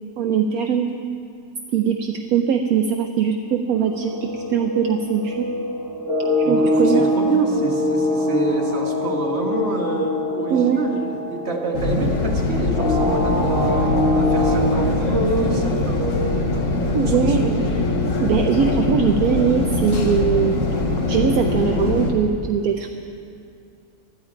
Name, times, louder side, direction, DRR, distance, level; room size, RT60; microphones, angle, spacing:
voice 1, 0.2-0.9 1.7-5.5 6.5-7.1 10.5-10.8 16.9-17.5 18.2-20.6 21.1-22.9, right 7 dB, 70° right, 5 dB, 1.1 m, -21 dB
sound 1, 3.7-14.6, left 1 dB, 5° right, 2.8 m, -24 dB
voice 2, 6.4-13.8 14.1-16.6 17.0-17.6, right 3 dB, 45° right, 0 dB, 1.8 m, -27 dB
Room Tone - Laundromat at Night, 11.7-22.1, left 3 dB, 55° left, 1.5 m, -22 dB
19.0 x 12.5 x 4.6 m, 2.5 s
omnidirectional pair, 1.7 m